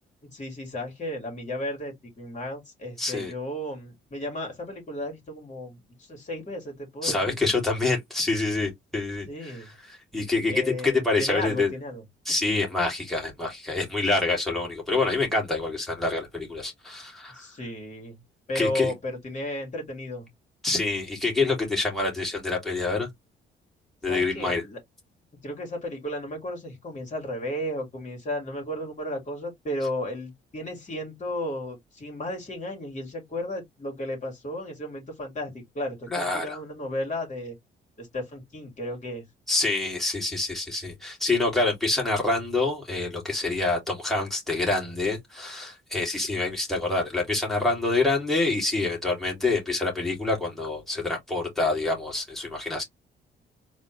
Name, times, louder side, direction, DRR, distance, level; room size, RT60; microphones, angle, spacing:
voice 1, 0.3-7.4 9.3-9.7 10.5-12.0 17.3-18.2 18.5-20.3 24.1-24.8 25.4-37.5 38.0-39.3, left 1 dB, 40° left, 2.7 m, -34 dB
voice 2, 3.0-3.3 7.0-11.7 12.2-17.4 18.5-18.9 20.6-23.1 24.0-24.6 36.1-36.6 39.5-52.8, left 3 dB, ahead, 2.6 m, -26 dB
4.2 x 3.0 x 3.1 m
cardioid pair, 90°, 20 cm